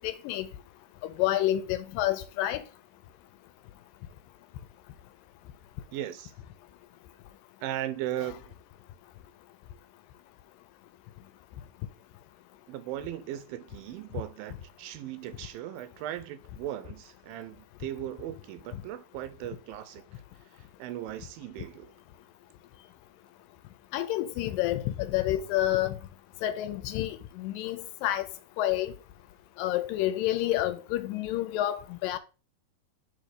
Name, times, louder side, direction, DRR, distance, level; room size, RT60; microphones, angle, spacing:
voice 1, 0.0-0.5 1.0-2.6 18.7-18.8 23.9-26.0 26.4-28.3 28.6-28.9 29.6-32.2, left 14 dB, 80° left, 2.2 m, -29 dB
voice 2, 5.9-6.3 7.6-8.6 12.7-20.0 20.5-21.9, right 12 dB, 85° right, 2.4 m, -38 dB
6.4 x 3.9 x 5.1 m
omnidirectional pair, 4.1 m